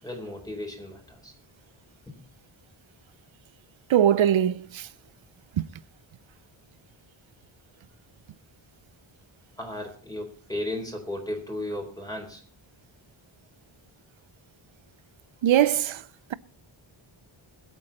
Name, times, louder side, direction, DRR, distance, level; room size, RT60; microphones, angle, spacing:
voice 1, 0.0-1.3 2.1-2.2 9.6-12.4, left 1 dB, 5° left, 4.1 m, -35 dB
voice 2, 3.9-4.9 5.6-5.7 15.4-16.0, right 10 dB, 70° right, 0.7 m, -21 dB
22.0 x 8.4 x 4.1 m
wide cardioid pair, 145°, 49 cm